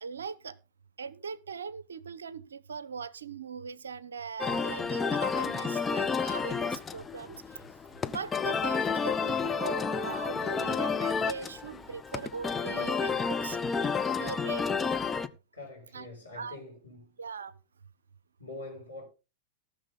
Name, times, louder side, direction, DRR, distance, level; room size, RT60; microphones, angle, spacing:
voice 1, 0.0-0.6 1.0-7.4 8.1-13.6 14.2-14.6 15.9-16.1 16.3-16.6 17.2-17.5, right 6 dB, 70° right, 0.7 m, -40 dB
sound 1, 4.4-15.3, left 5 dB, 15° left, 0.7 m, -31 dB
voice 2, 15.5-17.1 18.4-19.0, left 2 dB, 85° left, 6.1 m, -45 dB
18.0 x 6.4 x 3.9 m
figure-of-eight pair, 90°, 0 cm